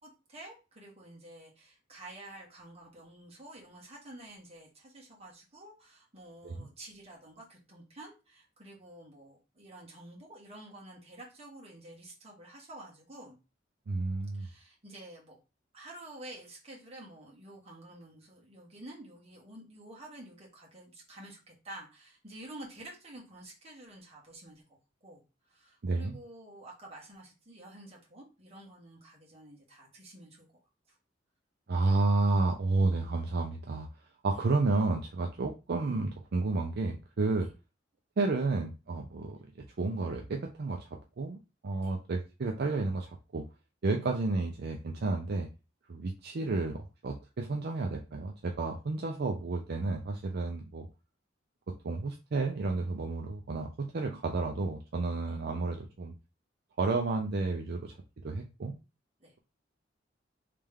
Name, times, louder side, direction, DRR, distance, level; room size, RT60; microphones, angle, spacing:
voice 1, 0.0-13.4 14.3-15.4 15.7-30.5 30.9-31.0 31.8-31.9 41.8-41.9 55.3-55.4 59.2-59.3, right 1 dB, 35° right, -3 dB, 1.5 m, -50 dB
voice 2, 13.9-14.5 25.8-26.2 31.7-33.9 34.2-37.5 38.2-43.5 43.8-45.5 45.9-50.9 51.8-56.1 56.8-58.0 58.2-58.7, right 3 dB, 60° right, 2 dB, 0.5 m, -31 dB
3.3 x 3.3 x 3.5 m, 0.30 s
head